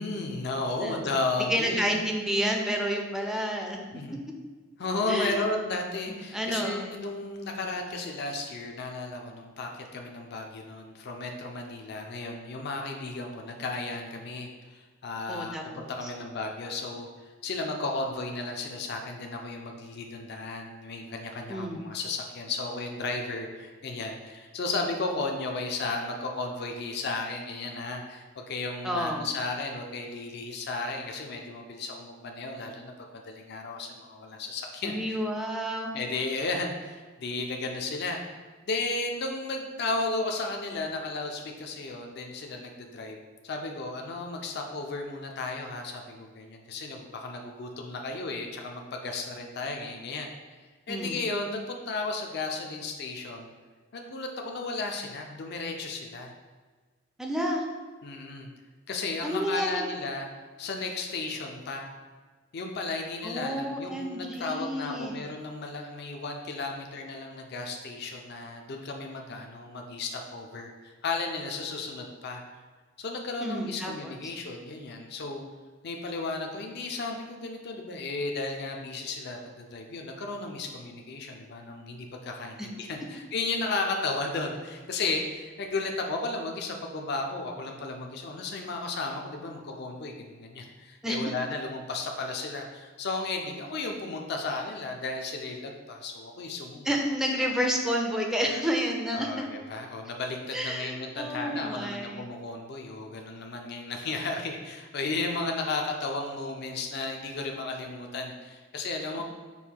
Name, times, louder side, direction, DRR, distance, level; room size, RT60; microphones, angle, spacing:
voice 1, 0.0-2.0 3.9-4.2 4.8-17.1 17.4-35.2 35.9-43.2 43.4-50.3 50.9-53.5 53.9-56.3 58.0-58.5 58.9-60.3 60.6-61.9 62.5-72.4 73.0-75.4 75.8-96.9 97.4-97.5 99.1-109.2, left 3 dB, 55° left, 2 dB, 0.5 m, -34 dB
voice 2, 1.5-3.8 5.1-5.4 6.1-6.9 15.3-16.1 21.5-21.8 28.8-29.3 34.8-35.9 50.9-51.2 57.2-57.6 59.2-59.9 63.2-65.2 73.4-74.1 91.0-91.2 96.8-99.5 100.5-102.3, equal, 5° right, 1 dB, 0.4 m, -30 dB
5.3 x 2.2 x 4.5 m, 1.4 s
head